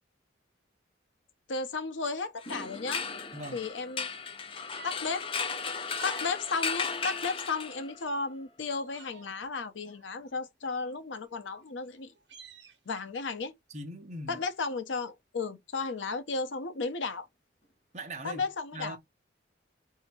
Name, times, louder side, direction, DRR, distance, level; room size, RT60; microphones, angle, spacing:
voice 1, 1.5-3.0 3.5-4.1 4.8-5.3 6.0-12.1 12.9-13.5 14.3-17.3 18.2-19.0, left 4 dB, 85° left, 0.7 m, -34 dB
sound 1, 1.7-1.8 2.2-10.8 11.0-11.5 15.1-15.2 16.8-16.9 17.2-17.3 17.6-18.1, equal, 55° left, 2.2 m, -54 dB
sound 2, 2.4-8.1, left 5 dB, 30° left, 0.5 m, -35 dB
sound 3, 4.7-5.0 5.7-6.3 6.9-7.6 8.0-8.2 8.6-9.5 9.9-11.0 11.6-11.7 12.0-12.8, right 6 dB, 70° right, 0.9 m, -52 dB
voice 2, 13.7-14.4 17.9-18.5 18.7-19.0, right 1 dB, 40° right, 0.8 m, -40 dB
3.4 x 2.8 x 4.3 m
head